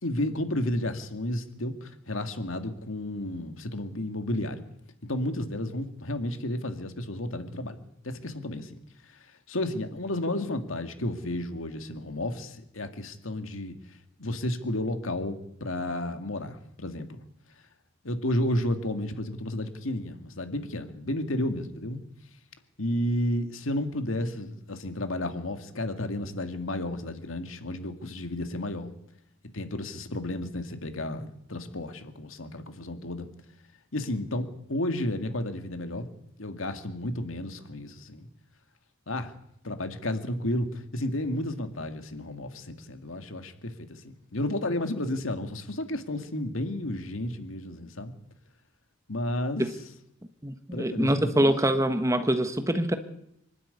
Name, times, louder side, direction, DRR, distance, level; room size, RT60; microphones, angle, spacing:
voice 1, 0.0-4.6 5.1-7.8 8.0-8.8 9.1-13.8 14.2-17.2 18.0-22.0 22.8-28.9 29.5-33.3 33.9-36.1 36.4-38.3 39.1-39.3 39.6-48.1 49.1-49.6 50.7-51.4, left 1 dB, 85° left, 8 dB, 2.1 m, -32 dB
voice 2, 50.4-52.9, right 1 dB, 15° right, 8 dB, 1.3 m, -24 dB
25.0 x 12.5 x 9.8 m, 0.77 s
head